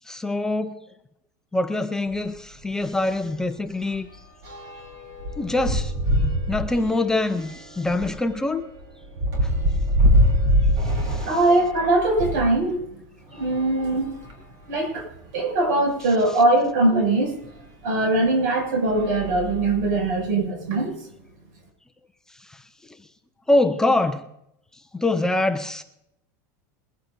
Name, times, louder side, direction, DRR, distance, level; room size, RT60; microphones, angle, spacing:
voice 1, 0.1-0.8 1.5-4.1 5.4-5.9 6.5-8.6 9.4-9.5 10.0-10.1 10.8-11.4 22.5-22.6 23.5-24.3 24.9-25.8, left 2 dB, 5° left, 7 dB, 0.5 m, -24 dB
sound 1, 2.1-2.3 2.6-2.8 3.1-12.5 13.3-14.6 15.3-15.4 15.6-15.7 17.4-17.5 18.2-18.5 18.8-20.1, equal, 45° right, 3.8 m, -25 dB
voice 2, 11.2-12.8 13.3-14.1 14.7-15.1 15.3-17.3 17.8-20.9, right 2 dB, 75° right, 2 dB, 6.7 m, -21 dB
21.5 x 15.0 x 2.6 m, 0.81 s
supercardioid pair, 165°, 10 cm